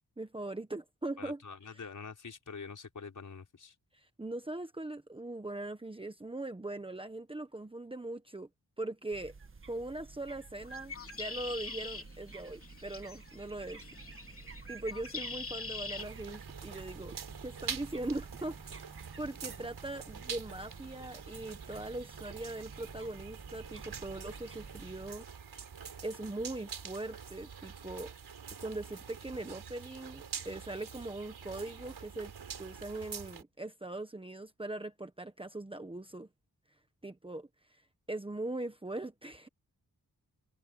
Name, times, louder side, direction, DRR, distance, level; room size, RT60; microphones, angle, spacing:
voice 1, 0.0-1.4 3.9-8.5 8.8-9.3 9.7-13.8 14.7-17.1 17.4-18.9 19.2-25.3 26.0-28.1 28.6-32.3 32.6-36.3 37.0-37.5 38.1-39.5, right 2 dB, 15° right, 1.2 m, -41 dB
voice 2, 1.2-3.7, left 5 dB, 55° left, 5.8 m, -46 dB
sound 1, 9.1-25.2, right 4 dB, 35° right, 1.8 m, -51 dB
Bird, 10.6-16.1, left 3 dB, 35° left, 3.0 m, -44 dB
sound 2, 16.0-33.4, right 6 dB, 90° right, 5.3 m, -46 dB
wide cardioid pair, 175°, 37 cm